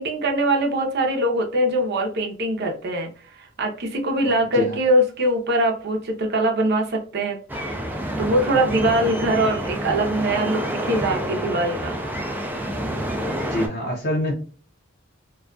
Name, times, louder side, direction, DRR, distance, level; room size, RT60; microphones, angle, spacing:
voice 1, 0.0-7.4 7.9-12.0, right 1 dB, 55° right, 2 dB, 0.6 m, -22 dB
voice 2, 4.2-4.8 9.0-9.1 13.5-14.3, left 1 dB, 55° left, -2 dB, 0.5 m, -26 dB
sound 1, 7.5-13.7, right 1 dB, 10° right, 0.3 m, -28 dB
2.3 x 2.2 x 2.4 m, 0.41 s
head